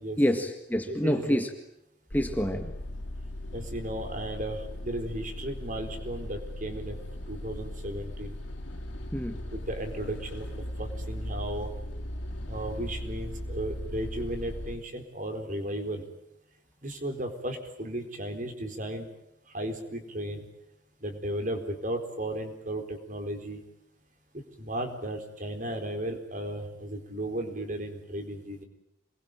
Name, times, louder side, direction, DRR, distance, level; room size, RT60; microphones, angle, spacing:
voice 1, 0.2-1.5 2.1-2.7 9.1-9.4, equal, 10° left, 4 dB, 1.8 m, -27 dB
voice 2, 0.9-1.4 3.5-7.0 7.3-8.3 9.5-10.5 10.8-11.7 12.5-16.0 16.8-19.1 19.5-20.5 21.0-23.6 24.3-28.6, right 1 dB, 40° right, 5 dB, 4.2 m, -35 dB
sound 1, 2.1-14.8, left 1 dB, 80° left, 3.4 m, -38 dB
27.5 x 21.5 x 9.2 m, 0.80 s
head